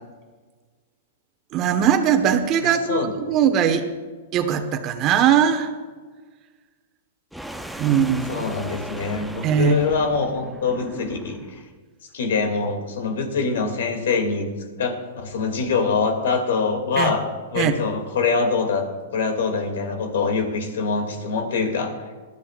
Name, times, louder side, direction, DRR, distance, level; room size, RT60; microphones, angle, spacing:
voice 1, 1.5-3.8 4.3-5.7 7.8-8.4 9.4-9.8 17.0-17.1 17.5-17.7, right 8 dB, 35° right, 6 dB, 1.3 m, -20 dB
voice 2, 2.6-3.1 8.3-11.6 12.1-14.5 14.8-17.2 17.5-18.9 19.1-21.9, left 4 dB, 75° left, 4 dB, 2.6 m, -24 dB
sound 1, 7.3-11.6, right 1 dB, ahead, 0.6 m, -37 dB
19.5 x 12.5 x 2.5 m, 1.4 s
hypercardioid pair, 140°, 0 cm